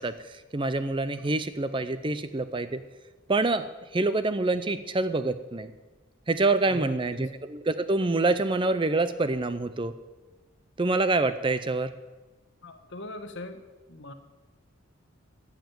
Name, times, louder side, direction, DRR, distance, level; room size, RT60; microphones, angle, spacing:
voice 1, 0.0-2.8 3.3-5.7 6.3-10.0 10.8-11.9, right 2 dB, 25° right, 12 dB, 0.5 m, -26 dB
voice 2, 6.6-7.3 12.6-13.6 13.9-14.1, left 1 dB, 55° left, 8 dB, 1.3 m, -41 dB
14.0 x 7.3 x 9.0 m, 1.2 s
head